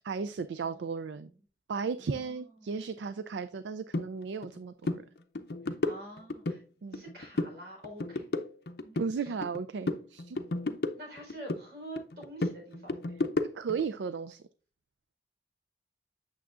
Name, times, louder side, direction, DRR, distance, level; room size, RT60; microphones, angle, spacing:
voice 1, 0.0-1.3 1.7-5.0 6.8-7.0 9.0-10.4 13.5-14.4, right 5 dB, 90° right, 12 dB, 0.4 m, -35 dB
voice 2, 2.0-2.8 5.6-6.6 6.9-8.4 8.8-9.3 11.0-13.0, right 1 dB, 75° right, 1 dB, 4.0 m, -47 dB
sound 1, 3.9-4.1 4.4-4.6 4.8-5.0 5.4-6.6 6.9-7.6 7.8-9.6 9.9-11.6 12.0-13.8, left 2 dB, 65° left, 0.6 m, -33 dB
8.5 x 6.9 x 2.4 m, 0.39 s
head